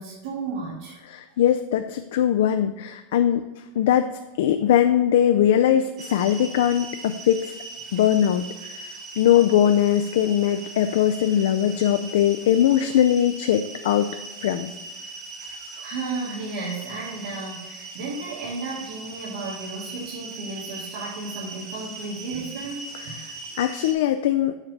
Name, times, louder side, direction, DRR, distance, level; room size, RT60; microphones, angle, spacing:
voice 1, 0.0-1.0 15.8-23.2, right 3 dB, 80° right, -7 dB, 1.9 m, -33 dB
voice 2, 1.1-3.4 3.8-4.1 4.4-7.5 7.9-14.1 14.4-14.7 15.6-15.9 23.3-24.5, left 10 dB, 75° left, 8 dB, 0.4 m, -21 dB
sound 1, 6.0-23.9, right 3 dB, 30° right, 0.9 m, -39 dB
7.2 x 3.4 x 5.3 m, 1.1 s
supercardioid pair, 150°, 0 cm